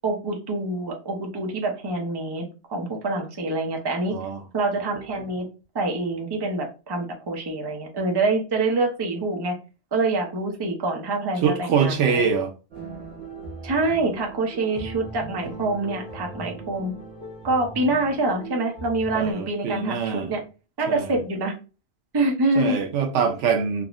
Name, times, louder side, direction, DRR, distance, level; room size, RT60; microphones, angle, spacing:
voice 1, 0.0-4.1 4.5-5.5 5.7-9.6 9.9-12.2 13.6-16.9 17.4-20.4 20.8-21.5 22.1-22.8, right 2 dB, 30° right, 0.5 m, -26 dB
voice 2, 4.1-4.4 11.4-12.5 15.5-15.7 19.1-20.3 20.9-21.2 22.6-23.8, right 6 dB, 80° right, 0.9 m, -24 dB
sound 1, 12.7-19.3, right 3 dB, 65° right, 1.3 m, -39 dB
3.6 x 2.0 x 2.4 m
omnidirectional pair, 1.2 m